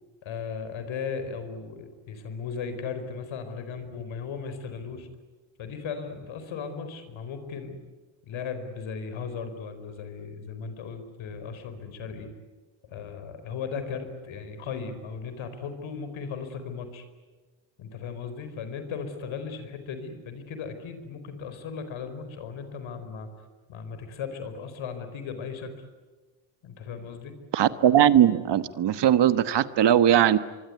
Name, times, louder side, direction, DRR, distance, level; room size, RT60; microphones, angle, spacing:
voice 1, 0.2-5.1 5.6-7.8 8.2-12.3 12.8-17.0 17.8-23.3 23.7-25.7 26.6-27.4, left 5 dB, 75° left, 9 dB, 4.7 m, -36 dB
voice 2, 27.5-30.4, right 10 dB, 60° right, 13 dB, 1.3 m, -20 dB
24.5 x 24.0 x 9.5 m, 1.3 s
cardioid pair, 100°, 48 cm